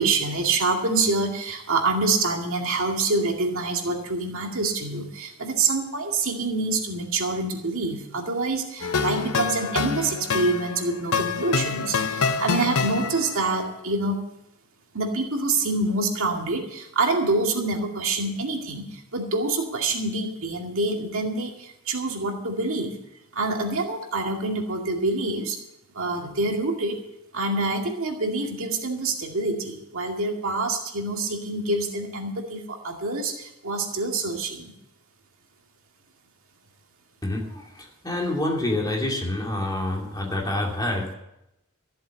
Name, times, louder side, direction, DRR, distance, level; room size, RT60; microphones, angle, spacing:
voice 1, 0.0-14.2 14.9-22.9 23.4-25.6 26.0-27.0 27.3-34.7, right 3 dB, 65° right, 2 dB, 2.3 m, -26 dB
sound 1, 8.8-13.5, left 5 dB, 85° left, 0.8 m, -26 dB
voice 2, 37.2-41.1, left 1 dB, 20° left, -1 dB, 2.7 m, -27 dB
14.5 x 7.7 x 8.2 m, 0.86 s
head